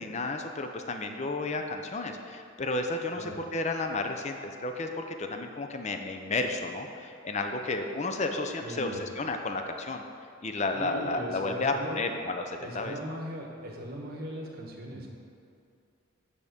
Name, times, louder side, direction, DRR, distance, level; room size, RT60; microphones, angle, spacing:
voice 1, 0.0-10.0 10.4-13.0, left 2 dB, 30° left, 5 dB, 0.5 m, -32 dB
voice 2, 8.6-9.0 10.7-12.1 12.6-15.1, equal, 45° right, 1 dB, 1.0 m, -39 dB
8.6 x 3.6 x 6.7 m, 2.6 s
head